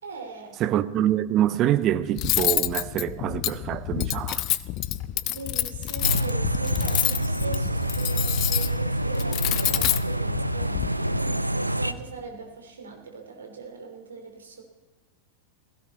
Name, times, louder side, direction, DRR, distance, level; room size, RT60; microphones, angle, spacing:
voice 1, 0.0-0.6 5.2-14.6, right 4 dB, 70° right, 2.9 m, -40 dB
voice 2, 0.6-4.4, right 12 dB, 35° right, 0.7 m, -25 dB
Cutlery silverware, 2.2-10.9, left 15 dB, 40° left, 0.5 m, -28 dB
sound 1, 6.0-11.9, right 1 dB, 85° right, 0.6 m, -27 dB
16.5 x 16.0 x 4.2 m
figure-of-eight pair, 90°, 0 cm